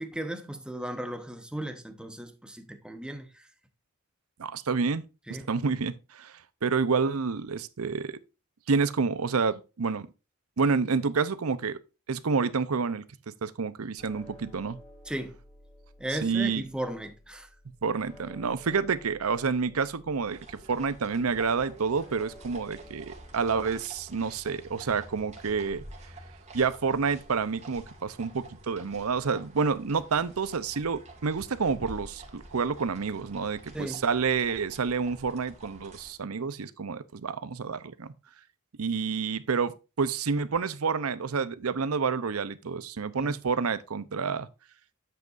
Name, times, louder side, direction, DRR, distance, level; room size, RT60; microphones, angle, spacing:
voice 1, 0.0-3.4 5.3-5.5 15.1-15.4 16.0-17.5 33.7-34.0 43.2-43.3, right 1 dB, 5° right, 1.0 m, -36 dB
voice 2, 4.4-8.2 8.7-10.1 10.6-11.8 12.1-14.8 16.1-16.6 17.8-25.8 26.5-38.1 38.8-44.5, right 5 dB, 90° right, 0.7 m, -29 dB
sound 1, 14.0-28.2, left 1 dB, 35° left, 5.1 m, -55 dB
sound 2, 20.2-36.1, right 2 dB, 30° right, 2.2 m, -49 dB
9.3 x 7.7 x 2.6 m
head